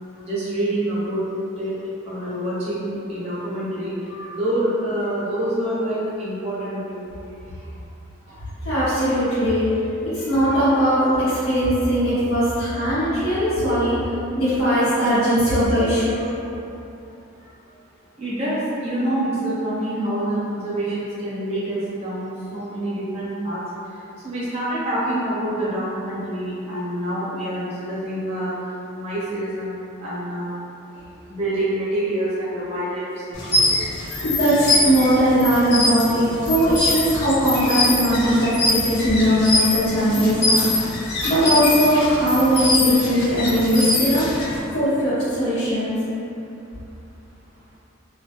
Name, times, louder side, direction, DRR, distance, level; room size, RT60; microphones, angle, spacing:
voice 1, 0.2-1.2 1.6-1.8 2.0-7.1 18.2-23.6 23.9-30.6 31.3-33.9, right 1 dB, 30° right, -10 dB, 0.7 m, -26 dB
voice 2, 8.6-16.3 34.2-40.9 41.2-44.3 44.7-46.0, equal, 75° left, -14 dB, 0.9 m, -19 dB
sound 1, 33.3-44.6, left 2 dB, 50° left, 0.5 m, -23 dB
2.3 x 2.0 x 2.9 m, 2.7 s
head